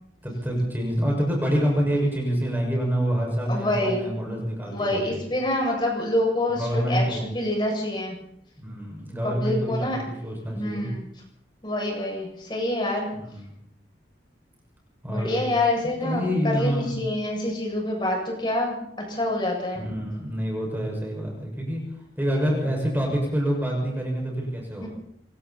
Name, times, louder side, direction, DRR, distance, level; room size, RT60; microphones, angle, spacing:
voice 1, 0.2-5.2 6.5-7.3 8.6-9.9 10.2-10.9 13.1-13.5 15.0-15.5 16.0-16.9 19.7-21.8 22.2-24.9, equal, 10° right, -1 dB, 6.1 m, -26 dB
voice 2, 3.5-4.4 4.6-8.1 9.2-10.0 10.5-11.0 11.6-13.1 15.1-19.8 24.8-24.9, left 1 dB, 25° left, -1 dB, 7.3 m, -27 dB
26.5 x 23.0 x 4.3 m, 0.72 s
head